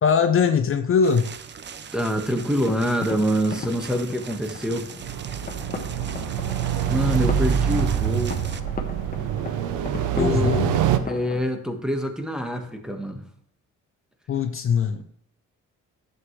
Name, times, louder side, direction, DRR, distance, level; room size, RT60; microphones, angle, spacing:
voice 1, 0.0-1.4 10.2-10.8 14.3-15.0, left 6 dB, 45° left, 0.7 m, -21 dB
sound 1, 1.0-8.6, right 7 dB, 35° right, 0.6 m, -41 dB
voice 2, 1.9-4.9 6.9-8.4 10.1-10.5 11.0-13.2 14.9-15.0, equal, ahead, 1.5 m, -25 dB
sound 2, 2.2-11.5, left 4 dB, 30° left, 1.3 m, -37 dB
sound 3, 5.0-11.0, right 10 dB, 85° right, 0.8 m, -25 dB
11.0 x 7.9 x 3.2 m
cardioid pair, 90°, 30 cm